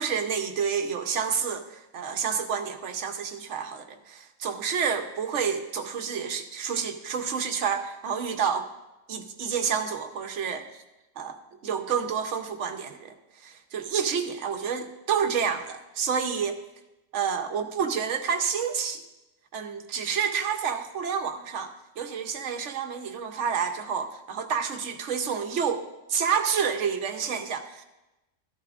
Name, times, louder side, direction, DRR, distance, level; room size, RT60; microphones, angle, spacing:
voice 1, 0.0-8.7 9.1-10.7 11.2-11.4 11.6-13.1 13.4-16.6 17.1-19.0 19.5-25.8 26.1-27.8, right 7 dB, 75° right, 7 dB, 1.1 m, -29 dB
13.5 x 11.0 x 2.5 m, 0.99 s
omnidirectional pair, 1.3 m